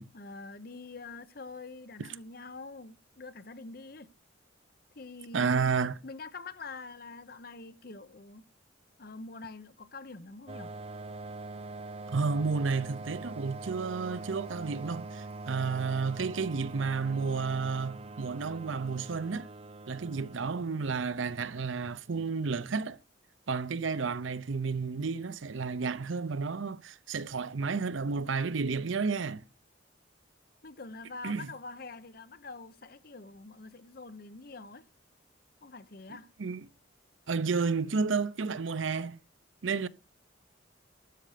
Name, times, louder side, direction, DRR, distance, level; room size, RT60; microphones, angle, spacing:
voice 1, 0.1-4.1 5.0-5.7 6.0-8.4 9.0-10.8 30.6-34.9 35.6-36.3, left 3 dB, 50° left, 0.9 m, -45 dB
voice 2, 5.3-6.0 12.1-19.5 19.9-23.0 23.5-29.4 31.2-31.5 36.4-36.7 37.3-39.2 39.6-39.9, right 4 dB, 80° right, 0.6 m, -31 dB
sound 1, 10.5-21.9, right 3 dB, 30° right, 0.5 m, -44 dB
12.5 x 7.7 x 5.0 m
head